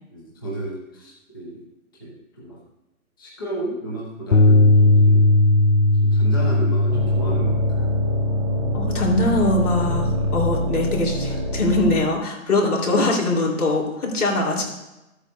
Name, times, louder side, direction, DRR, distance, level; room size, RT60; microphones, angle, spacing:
voice 1, 0.1-1.6 2.0-2.6 3.2-5.2 6.0-7.9 12.8-13.0, right 1 dB, 15° left, -4 dB, 0.8 m, -33 dB
sound 1, 4.3-10.6, left 2 dB, 55° left, 0.5 m, -18 dB
sound 2, 6.9-12.0, equal, 25° right, 0.9 m, -27 dB
voice 2, 8.7-14.6, left 2 dB, 85° left, -1 dB, 3.9 m, -22 dB
14.0 x 8.2 x 2.7 m, 0.96 s
hypercardioid pair, 175°, 44 cm